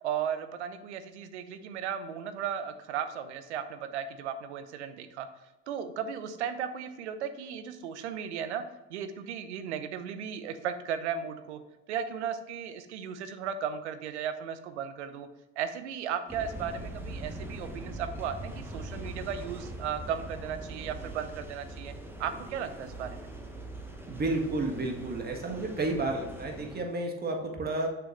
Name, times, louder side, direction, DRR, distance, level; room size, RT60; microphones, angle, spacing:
voice 1, 0.0-5.3 5.7-8.6 8.9-11.6 11.9-15.3 15.6-21.9 22.2-23.3, right 8 dB, 85° right, 11 dB, 0.7 m, -35 dB
sound 1, 16.3-26.8, right 2 dB, 5° right, 1.2 m, -42 dB
voice 2, 24.1-27.9, right 2 dB, 30° right, 2 dB, 1.7 m, -31 dB
6.6 x 6.0 x 3.1 m, 1.0 s
hypercardioid pair, 65°, 34 cm